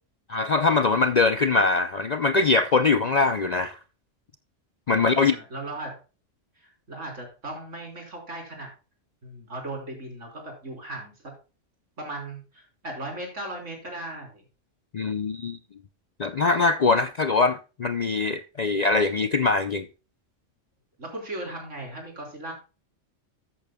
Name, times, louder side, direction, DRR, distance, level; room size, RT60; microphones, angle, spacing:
voice 1, 0.3-3.8 4.9-5.4 14.9-15.6 16.2-19.9, left 3 dB, 50° left, 0.5 m, -22 dB
voice 2, 5.0-6.0 6.6-8.7 9.2-11.1 12.0-14.4 21.0-22.5, right 1 dB, 75° right, 4.1 m, -37 dB
13.5 x 8.5 x 2.2 m
omnidirectional pair, 1.3 m